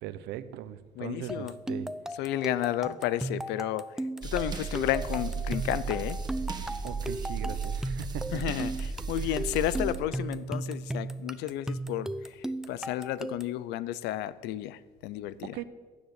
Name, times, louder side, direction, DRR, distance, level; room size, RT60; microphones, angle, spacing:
voice 1, 0.0-1.9 6.8-8.6 9.2-9.4 15.4-15.6, right 12 dB, 90° right, 13 dB, 0.9 m, -39 dB
voice 2, 1.0-1.5 2.2-3.9 4.2-6.2 8.3-15.6, left 13 dB, 90° left, 18 dB, 0.7 m, -32 dB
sound 1, 1.3-13.6, right 1 dB, 5° right, 0.6 m, -36 dB
sound 2, 4.2-10.0, right 5 dB, 25° right, 1.7 m, -34 dB
16.0 x 10.0 x 8.2 m, 1.5 s
cardioid pair, 110°, 17 cm